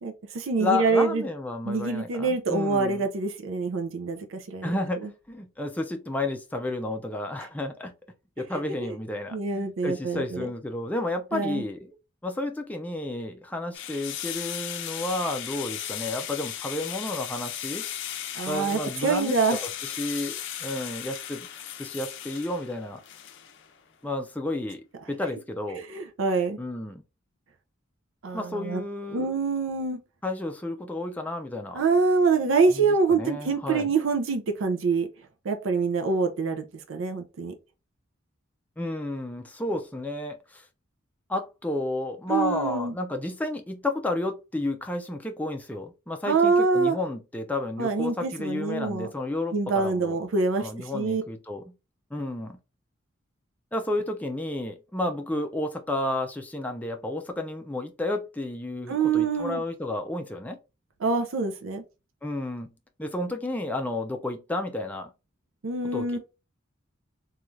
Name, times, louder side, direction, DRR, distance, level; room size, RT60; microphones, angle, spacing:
voice 1, 0.0-1.2 1.7-4.7 8.8-9.0 9.3-10.5 11.3-11.6 18.4-19.6 25.7-26.6 28.2-28.8 29.1-30.0 31.7-35.1 35.4-37.5 42.3-42.9 46.3-47.0 47.8-49.1 49.5-51.2 58.9-59.6 61.0-61.8 65.6-66.2, right 4 dB, 75° right, 0.5 m, -25 dB
voice 2, 0.6-3.0 4.6-7.9 8.4-12.0 12.2-17.8 18.5-19.4 19.8-21.5 21.8-23.0 24.0-25.8 26.6-27.0 28.3-29.3 30.2-31.8 32.7-33.9 38.8-40.6 41.3-50.2 50.6-51.8 52.1-52.6 53.7-60.6 62.2-62.7 63.0-65.1 65.9-66.2, left 2 dB, 10° left, 0.4 m, -31 dB
sound 1, 13.7-23.7, left 10 dB, 65° left, 0.5 m, -36 dB
3.1 x 2.3 x 2.5 m
head